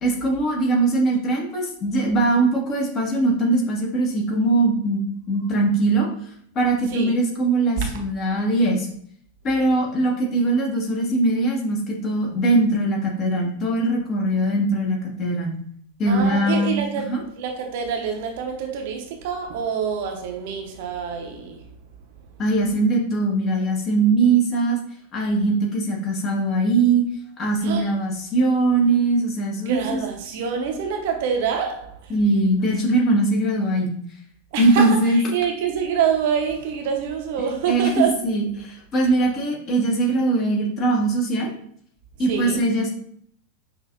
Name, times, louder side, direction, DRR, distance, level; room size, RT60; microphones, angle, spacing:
voice 1, 0.0-5.0 5.3-6.1 6.5-8.9 9.4-15.5 16.0-17.2 22.4-24.8 25.1-27.0 27.4-30.0 32.1-33.9 34.6-35.2 37.4-41.5 42.2-42.9, right 2 dB, 30° left, 1.3 m, -21 dB
voice 2, 16.1-21.6 27.6-27.9 29.7-32.1 34.5-38.3 42.3-42.6, right 7 dB, 50° right, 0.7 m, -26 dB
6.0 x 2.7 x 2.4 m
figure-of-eight pair, 90°, 0 cm